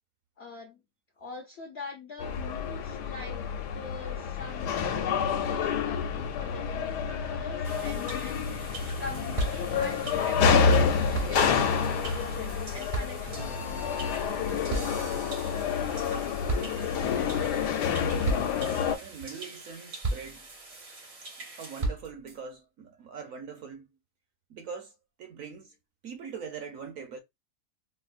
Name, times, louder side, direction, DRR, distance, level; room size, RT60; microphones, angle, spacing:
voice 1, 0.4-0.8 1.2-3.5 3.7-4.9 5.4-14.5, left 4 dB, 65° left, 0.6 m, -43 dB
sound 1, 2.2-19.0, left 6 dB, 85° left, 1.2 m, -28 dB
sound 2, 7.6-21.8, right 3 dB, 85° right, 2.1 m, -46 dB
sound 3, 8.5-8.6 8.8-8.9 9.1-10.8 11.1-16.2 16.5-17.2 17.6-17.9 18.2-18.8 19.2-19.6 20.0-21.0 21.4-22.4, right 2 dB, 45° right, 0.6 m, -36 dB
voice 2, 16.9-17.4 18.9-20.5 21.6-23.9 24.5-25.8 26.0-27.2, right 6 dB, 65° right, 0.9 m, -42 dB
4.4 x 2.0 x 2.4 m
omnidirectional pair, 1.7 m